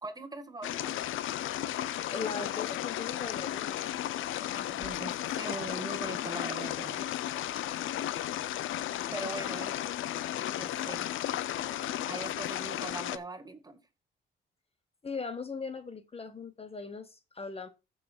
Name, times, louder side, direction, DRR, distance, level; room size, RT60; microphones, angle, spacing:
voice 1, 0.0-1.0 4.4-7.0 9.1-9.8 10.5-11.1 11.6-13.8, right 3 dB, 20° right, 1.9 m, -41 dB
sound 1, 0.6-13.2, left 12 dB, 80° left, 0.7 m, -34 dB
voice 2, 2.1-3.8 7.4-7.5 9.4-9.5 15.0-17.7, left 4 dB, 30° left, 1.2 m, -39 dB
15.0 x 6.7 x 2.5 m
cardioid pair, 90°, 20 cm